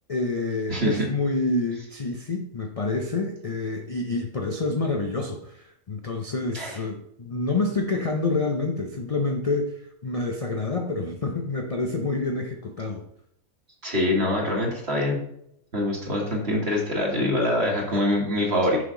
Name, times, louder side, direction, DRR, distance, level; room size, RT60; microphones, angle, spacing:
voice 1, 0.1-13.0, left 3 dB, 60° left, 3 dB, 0.3 m, -28 dB
voice 2, 13.8-15.2 15.7-18.8, left 1 dB, 45° right, -1 dB, 1.7 m, -24 dB
6.3 x 5.6 x 3.8 m, 0.74 s
omnidirectional pair, 1.6 m